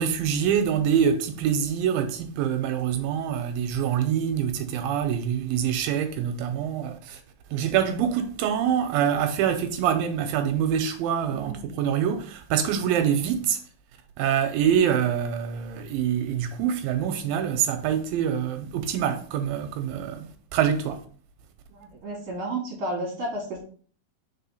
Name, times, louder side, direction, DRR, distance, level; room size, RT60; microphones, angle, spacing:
voice 1, 0.0-7.2 7.5-13.6 14.2-21.0, right 8 dB, 85° right, 2.3 m, -25 dB
voice 2, 11.3-11.8 21.7-23.6, right 2 dB, 60° right, 1.8 m, -32 dB
4.9 x 4.3 x 5.3 m
omnidirectional pair, 4.2 m